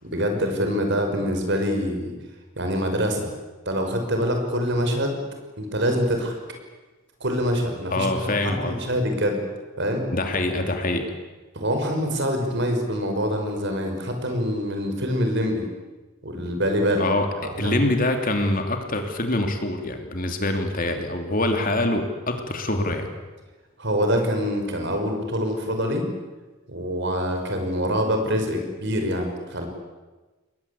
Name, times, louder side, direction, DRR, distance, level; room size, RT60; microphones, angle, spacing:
voice 1, 0.0-2.1 2.6-3.3 3.7-5.2 5.6-6.4 7.2-9.4 9.8-10.1 11.5-15.6 16.2-17.1 17.6-17.8 23.8-26.1 26.7-29.7, equal, 55° right, 4 dB, 5.8 m, -25 dB
voice 2, 7.9-8.8 10.1-11.0 17.0-17.3 17.6-23.1, left 2 dB, 40° left, 5 dB, 3.1 m, -25 dB
28.5 x 21.5 x 8.5 m, 1.2 s
head